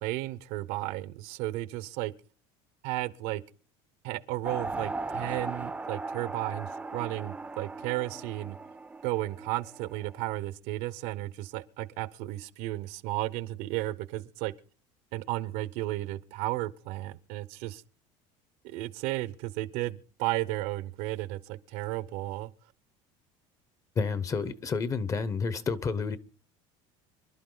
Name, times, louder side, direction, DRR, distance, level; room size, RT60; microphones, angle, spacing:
voice 1, 0.0-2.1 2.8-3.4 4.0-8.6 9.0-14.5 15.1-17.8 18.6-22.5, right 17 dB, 75° right, 1.0 m, -34 dB
sound 1, 4.4-10.4, right 3 dB, 10° right, 0.7 m, -38 dB
voice 2, 23.9-26.2, left 5 dB, 25° left, 1.0 m, -30 dB
25.5 x 11.5 x 4.0 m
cardioid pair, 145°, 13 cm